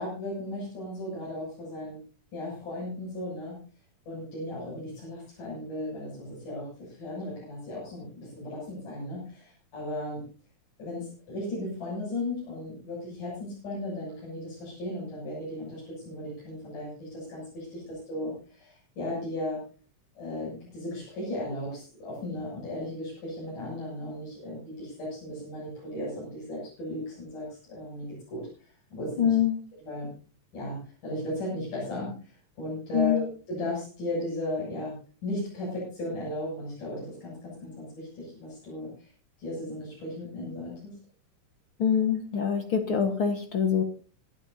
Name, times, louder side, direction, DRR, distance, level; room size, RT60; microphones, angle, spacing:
voice 1, 0.0-2.0 2.3-3.6 4.1-10.2 10.8-19.6 20.2-29.4 29.8-30.1 30.5-39.1 39.4-40.8, left 1 dB, 75° left, -6 dB, 9.3 m, -36 dB
voice 2, 29.2-29.6 32.9-33.2 41.8-43.8, left 8 dB, 50° left, 6 dB, 1.8 m, -24 dB
26.5 x 12.0 x 2.7 m, 0.38 s
omnidirectional pair, 3.7 m